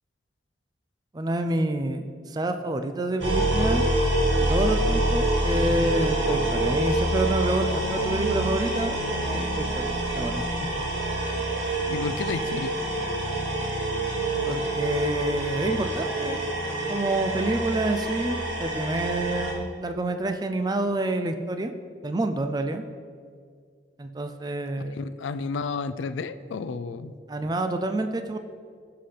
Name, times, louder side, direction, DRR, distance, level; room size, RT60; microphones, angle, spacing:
voice 1, 1.1-3.8 4.4-10.4 14.4-16.5 16.9-21.7 22.0-22.8 24.0-25.1 27.3-28.4, right 2 dB, 20° right, 7 dB, 0.4 m, -28 dB
sound 1, 3.2-19.5, right 1 dB, 80° right, 1.9 m, -26 dB
voice 2, 11.9-12.7 24.9-27.1, left 4 dB, 85° left, 13 dB, 0.4 m, -31 dB
15.0 x 5.8 x 3.3 m, 2.1 s
head